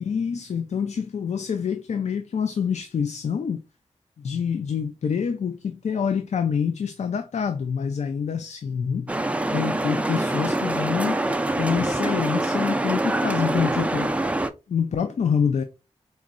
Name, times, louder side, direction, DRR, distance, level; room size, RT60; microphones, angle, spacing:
voice 1, 0.0-3.6 4.2-9.1 9.5-11.3 11.6-14.1 14.7-15.6, left 7 dB, 80° left, 0.4 m, -26 dB
sound 1, 9.1-14.5, right 2 dB, 10° right, 0.3 m, -25 dB
4.4 x 3.0 x 2.4 m
wide cardioid pair, 90°, 12 cm